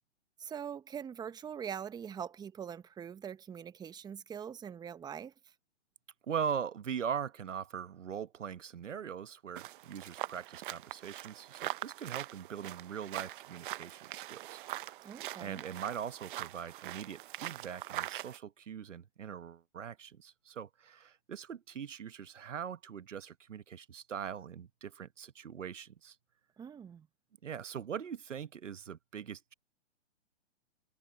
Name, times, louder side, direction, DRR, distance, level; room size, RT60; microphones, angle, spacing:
voice 1, 0.4-5.3 15.0-15.6 26.6-27.1, right 8 dB, 10° right, 1.2 m, -43 dB
voice 2, 6.3-14.6 15.4-26.2 27.4-29.5, right 8 dB, 80° right, 1.2 m, -41 dB
sound 1, 9.6-18.4, right 15 dB, 45° right, 0.9 m, -43 dB
hypercardioid pair, 130°, 36 cm